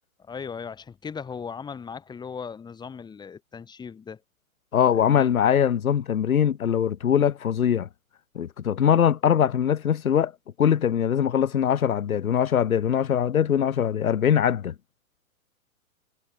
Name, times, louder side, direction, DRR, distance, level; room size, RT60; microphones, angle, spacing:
voice 1, 0.2-4.2 4.9-5.3, left 6 dB, 10° left, 7.8 m, -38 dB
voice 2, 4.7-7.9 8.4-10.3 10.6-14.7, left 8 dB, 80° left, 1.9 m, -22 dB
hypercardioid pair, 150°, 42 cm